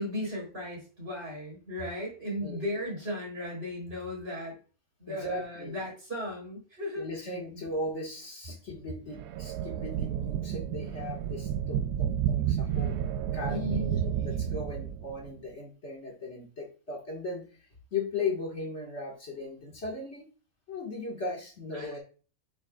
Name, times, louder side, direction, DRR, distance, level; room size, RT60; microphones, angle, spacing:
voice 1, 0.0-4.6 5.0-7.0 13.5-13.9 21.7-22.0, left 1 dB, 45° right, -1 dB, 4.0 m, -36 dB
voice 2, 2.4-2.8 5.1-5.8 7.0-12.9 13.3-17.5 17.9-20.3 20.7-22.0, left 3 dB, 50° left, 0 dB, 2.1 m, -37 dB
sound 1, 9.1-15.3, right 10 dB, 75° right, 1.0 m, -31 dB
8.2 x 7.0 x 2.4 m, 0.36 s
omnidirectional pair, 1.5 m